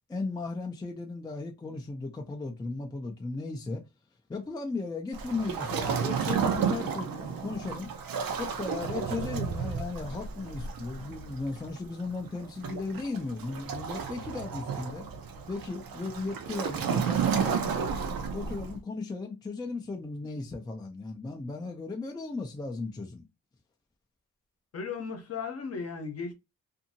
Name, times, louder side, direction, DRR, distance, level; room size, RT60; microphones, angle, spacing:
voice 1, 0.1-3.8 4.3-7.9 8.4-15.1 15.5-17.8 18.3-23.2, left 3 dB, 10° left, 0.4 m, -36 dB
Waves surf, 5.1-18.8, right 6 dB, 90° right, 0.7 m, -32 dB
voice 2, 24.7-26.3, left 5 dB, 45° left, 0.8 m, -36 dB
2.7 x 2.6 x 2.6 m
wide cardioid pair, 140°, 34 cm